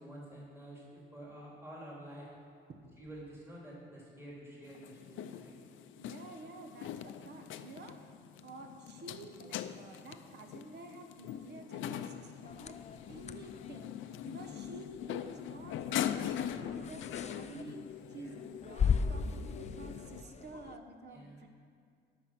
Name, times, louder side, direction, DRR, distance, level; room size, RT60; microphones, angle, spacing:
voice 1, 0.0-2.3 3.0-5.6 14.4-14.6 18.1-18.4 21.1-21.4, right 1 dB, 10° right, -5 dB, 2.9 m, -49 dB
sound 1, 4.7-20.2, left 10 dB, 80° left, 0.5 m, -42 dB
voice 2, 5.9-8.0 8.4-12.8 13.1-21.5, right 2 dB, 60° right, 5 dB, 1.3 m, -50 dB
sound 2, 12.5-20.8, left 6 dB, 35° left, 0.5 m, -38 dB
13.0 x 6.1 x 6.0 m, 2.2 s
cardioid pair, 90°, 20 cm